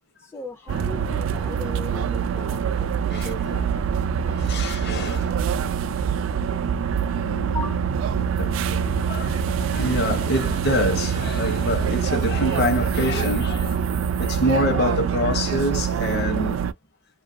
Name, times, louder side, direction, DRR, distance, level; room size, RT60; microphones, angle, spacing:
voice 1, 0.2-3.9 7.5-7.9, left 2 dB, 10° left, 0.3 m, -38 dB
sound 1, 0.7-16.7, right 7 dB, 75° right, 0.3 m, -25 dB
voice 2, 3.1-3.6 4.3-5.3 6.7-7.7 8.1-13.9 14.2-16.7, left 1 dB, 55° left, 0.8 m, -27 dB
2.5 x 2.3 x 2.5 m
head